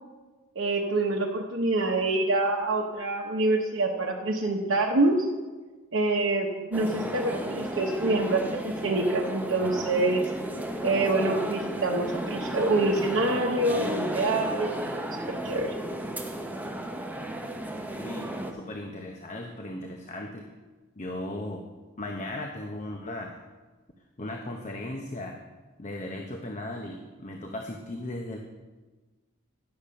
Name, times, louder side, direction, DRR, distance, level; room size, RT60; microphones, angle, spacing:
voice 1, 0.6-5.2 5.9-10.2 10.8-15.0 15.3-15.7, right 2 dB, 60° right, 0 dB, 0.9 m, -26 dB
sound 1, 6.7-18.5, right 1 dB, 10° right, 0.8 m, -34 dB
voice 2, 18.0-20.5 21.0-21.6 22.0-23.4 24.2-25.4 25.8-28.4, left 1 dB, 35° left, 2 dB, 0.7 m, -37 dB
10.5 x 6.8 x 5.6 m, 1.3 s
head